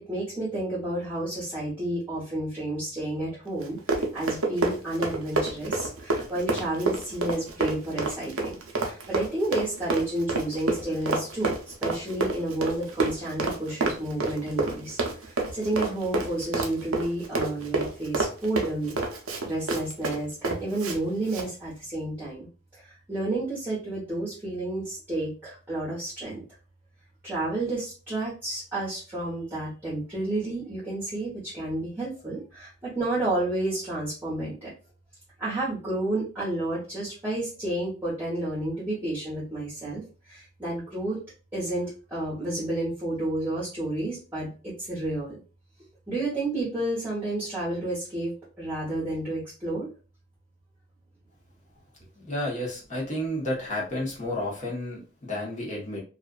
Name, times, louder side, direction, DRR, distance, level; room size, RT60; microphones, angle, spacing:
voice 1, 0.0-8.6 8.8-11.5 11.8-18.9 19.4-22.5 22.7-26.4 27.2-34.7 35.4-41.2 41.5-44.5 44.8-45.4 46.1-48.3 48.6-49.9, right 1 dB, 10° right, -9 dB, 1.0 m, -31 dB
Run, 3.6-21.0 21.3-21.5, right 3 dB, 80° right, 0.5 m, -29 dB
voice 2, 52.2-56.0, left 1 dB, 35° left, -4 dB, 1.0 m, -31 dB
2.5 x 2.4 x 2.3 m, 0.36 s
head